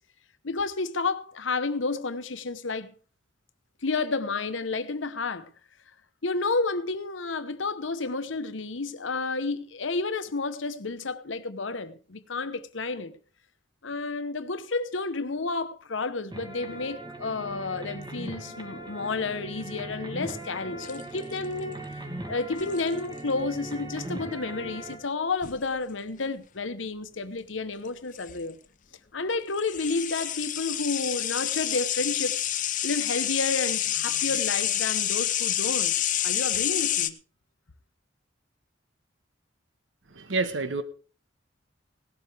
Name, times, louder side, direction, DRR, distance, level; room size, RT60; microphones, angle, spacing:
voice 1, 0.4-2.9 3.8-5.5 6.2-13.2 13.8-21.8 22.3-28.6 29.1-32.5 32.8-36.0 36.2-37.2, left 3 dB, 85° left, 1.0 m, -31 dB
sound 1, 16.3-25.0, right 1 dB, 25° right, 2.4 m, -39 dB
sound 2, 20.8-21.6 22.6-23.0 25.4-25.6 27.9-28.0 28.2-28.3 29.5-37.1, left 11 dB, 45° left, 0.7 m, -28 dB
voice 2, 40.2-40.8, right 3 dB, 85° right, 1.4 m, -28 dB
17.5 x 12.0 x 3.5 m
head